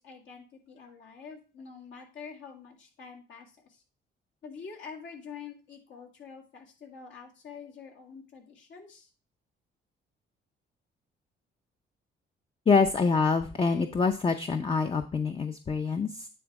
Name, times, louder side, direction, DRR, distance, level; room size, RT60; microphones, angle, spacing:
voice 1, 0.0-3.8 4.4-9.1, left 6 dB, 70° left, 0 dB, 2.2 m, -46 dB
voice 2, 12.7-16.3, left 4 dB, 25° left, 7 dB, 0.6 m, -26 dB
9.3 x 3.5 x 4.8 m, 0.34 s
cardioid pair, 90°, 20 cm